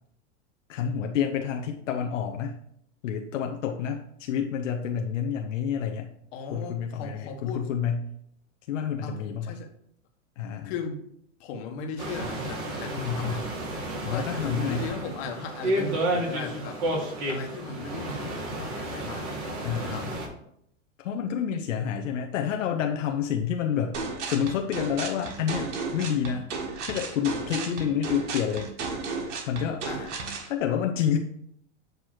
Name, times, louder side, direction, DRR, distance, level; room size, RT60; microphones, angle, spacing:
voice 1, 0.7-2.6 3.0-6.1 6.5-8.1 8.7-9.6 10.4-10.7 13.0-13.5 14.0-14.9 19.6-20.1 21.0-24.0 24.3-26.5 26.9-28.7 29.5-29.9 30.5-31.2, left 8 dB, 85° left, 3 dB, 0.8 m, -29 dB
voice 2, 6.3-7.6 9.0-9.2 9.4-9.7 10.6-11.0 11.4-13.4 14.1-16.8 17.3-20.2 29.9-30.1, left 4 dB, 60° left, 3 dB, 1.3 m, -37 dB
sound 1, 12.0-20.3, right 1 dB, 50° right, 2.2 m, -31 dB
sound 2, 23.9-30.5, right 4 dB, 70° right, 1.6 m, -34 dB
7.9 x 3.0 x 4.8 m, 0.72 s
supercardioid pair, 130°, 37 cm